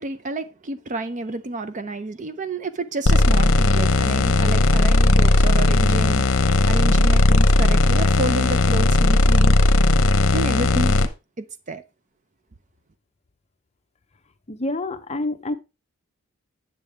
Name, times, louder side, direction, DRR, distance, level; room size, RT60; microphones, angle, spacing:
voice 1, 0.0-6.2 6.7-9.5 10.3-11.1 11.4-11.8, right 2 dB, 35° right, 0.5 m, -30 dB
sound 1, 3.1-11.1, left 2 dB, 65° left, 0.8 m, -17 dB
voice 2, 14.5-15.5, left 2 dB, 30° left, 0.7 m, -27 dB
9.1 x 6.8 x 3.4 m
head